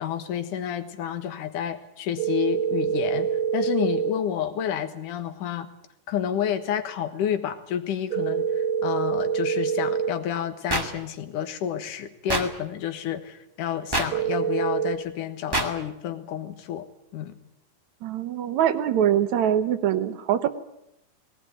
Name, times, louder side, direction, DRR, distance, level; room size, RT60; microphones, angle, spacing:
voice 1, 0.0-5.7 6.1-16.9 17.1-17.4, left 9 dB, 70° left, 10 dB, 2.8 m, -30 dB
sound 1, 2.2-4.1 8.1-10.1 14.1-15.0, right 8 dB, 90° right, 3.1 m, -25 dB
sound 2, 10.7-10.8 12.3-12.4 13.9-14.1 15.5-15.7, right 1 dB, 10° right, 1.5 m, -24 dB
voice 2, 18.0-20.5, right 10 dB, 65° right, 11 dB, 2.1 m, -23 dB
19.5 x 18.5 x 9.4 m, 0.82 s
omnidirectional pair, 4.0 m